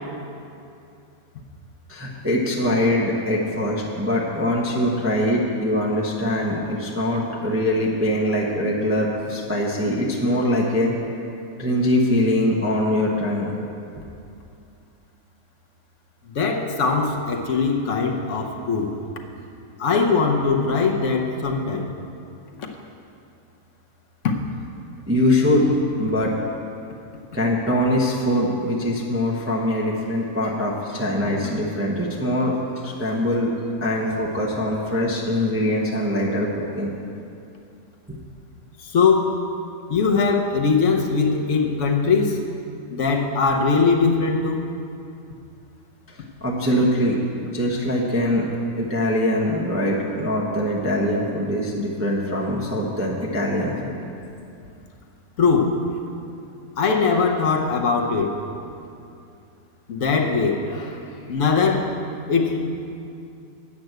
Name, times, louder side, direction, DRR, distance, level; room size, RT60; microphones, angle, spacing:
voice 1, 1.9-10.9 11.6-13.5 25.1-25.7 26.0-26.3 27.3-33.5 33.8-36.9 46.1-48.4 48.8-53.9, left 1 dB, 10° right, -4 dB, 0.8 m, -23 dB
voice 2, 16.3-19.0 19.8-21.9 22.6-22.7 24.2-24.3 38.8-39.4 39.9-42.4 42.9-44.6 55.4-55.8 56.8-58.4 59.9-62.0 62.3-62.6, left 4 dB, 60° left, 2 dB, 1.1 m, -21 dB
8.5 x 6.0 x 7.9 m, 2.6 s
omnidirectional pair, 1.6 m